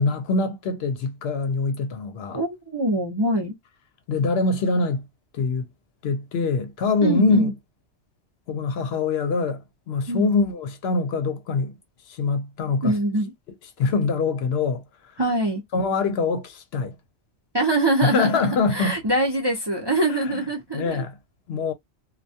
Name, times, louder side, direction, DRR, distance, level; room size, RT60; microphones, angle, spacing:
voice 1, 0.0-2.4 4.1-5.1 5.3-5.7 6.0-7.5 8.5-11.8 12.1-12.9 13.8-15.1 15.7-17.0 18.0-19.0 20.1-20.4 20.7-21.2 21.5-21.7, left 4 dB, 70° left, 0.8 m, -24 dB
voice 2, 2.3-3.5 7.0-7.5 10.1-10.3 12.8-13.3 15.2-15.6 17.5-18.3 18.7-21.0, right 1 dB, 30° right, 0.5 m, -23 dB
2.2 x 2.2 x 2.6 m
omnidirectional pair, 1.2 m